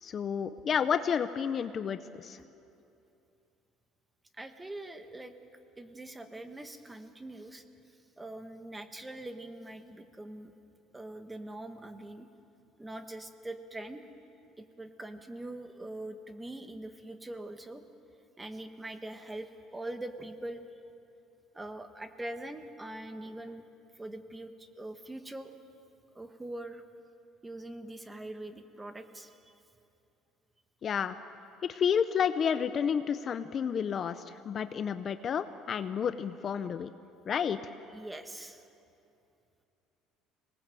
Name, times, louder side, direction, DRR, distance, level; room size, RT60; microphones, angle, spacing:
voice 1, 0.0-2.4 30.8-31.2 31.6-36.9 37.3-37.6, left 7 dB, 35° left, 11 dB, 0.6 m, -30 dB
voice 2, 4.3-5.3 5.8-7.6 8.2-10.5 10.9-12.3 12.8-14.0 14.6-17.8 18.4-20.6 21.5-23.6 23.9-25.6 26.1-26.8 27.4-29.5 37.9-38.7, right 1 dB, 10° right, 8 dB, 1.2 m, -43 dB
25.5 x 19.0 x 7.7 m, 2.7 s
cardioid pair, 140°, 0 cm